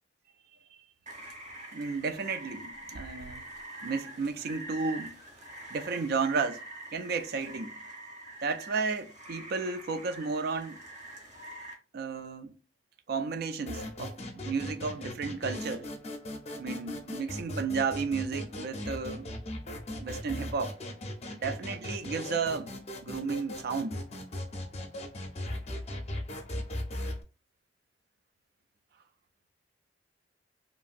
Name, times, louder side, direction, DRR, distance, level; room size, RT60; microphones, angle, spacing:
Rain, 1.1-11.7, right 2 dB, 45° right, 0.8 m, -45 dB
voice 1, 1.7-3.4 3.8-5.2 5.7-6.7 6.9-7.7 8.4-10.8 11.9-12.5 13.1-15.9 16.6-19.3 19.9-20.8 21.3-22.7 23.0-24.0, right 4 dB, 60° right, 0.3 m, -33 dB
sound 1, 13.6-27.2, left 1 dB, 40° left, 0.5 m, -38 dB
3.0 x 2.5 x 2.4 m
head